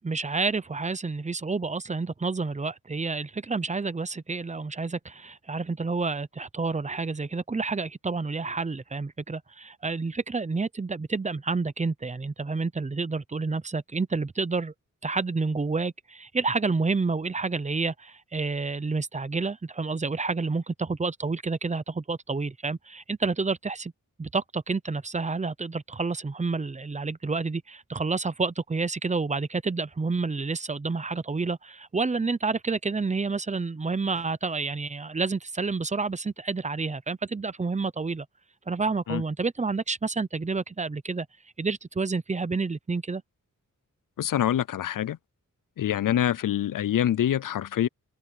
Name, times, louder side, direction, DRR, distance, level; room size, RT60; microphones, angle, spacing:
voice 1, 0.0-14.7 15.0-23.9 24.2-38.3 38.7-41.3 41.6-43.2, right 4 dB, 20° right, 0.6 m, -29 dB
voice 2, 44.2-45.2 45.8-47.9, left 11 dB, 80° left, 0.5 m, -25 dB
wide cardioid pair, 130°, 32 cm